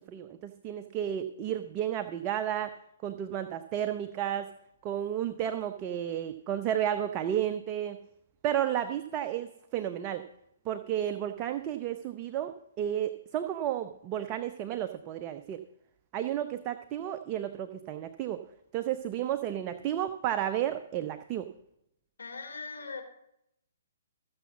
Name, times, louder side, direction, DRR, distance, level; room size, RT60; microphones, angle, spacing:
voice 1, 0.1-2.7 3.0-4.5 4.8-8.0 8.4-10.3 10.7-15.6 16.1-18.4 18.7-21.5, right 10 dB, 30° right, 8 dB, 0.7 m, -32 dB
voice 2, 22.2-23.0, left 4 dB, 70° left, 3 dB, 3.3 m, -40 dB
14.5 x 7.1 x 7.1 m, 0.77 s
figure-of-eight pair, 130°, 0 cm